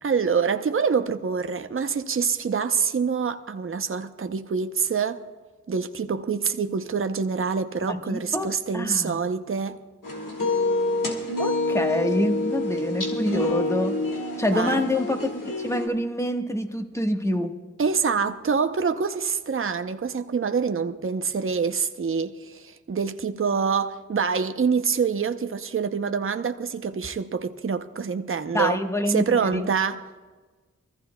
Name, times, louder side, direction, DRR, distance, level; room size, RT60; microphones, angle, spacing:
voice 1, 0.0-5.2 5.7-9.8 14.5-14.8 17.8-28.8 29.1-30.0, right 5 dB, 40° right, 0.7 m, -26 dB
voice 2, 7.9-9.3 11.4-14.0 14.4-17.6 28.5-29.7, left 1 dB, 10° left, 1.3 m, -26 dB
sound 1, 10.0-15.9, left 2 dB, 85° left, 1.9 m, -27 dB
24.5 x 14.5 x 2.3 m
cardioid pair, 45°, 32 cm